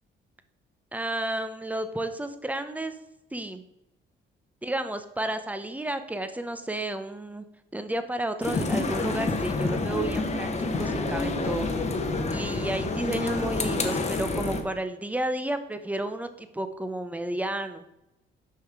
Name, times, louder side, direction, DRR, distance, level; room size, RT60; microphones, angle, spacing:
voice 1, 0.9-3.0 3.3-3.6 4.6-7.4 7.7-10.5 10.8-11.7 12.3-17.8, right 1 dB, 5° right, 9 dB, 0.7 m, -31 dB
sound 1, 8.4-14.6, left 3 dB, 35° left, 1.0 m, -28 dB
5.6 x 5.6 x 4.7 m, 0.88 s
cardioid pair, 90°, 20 cm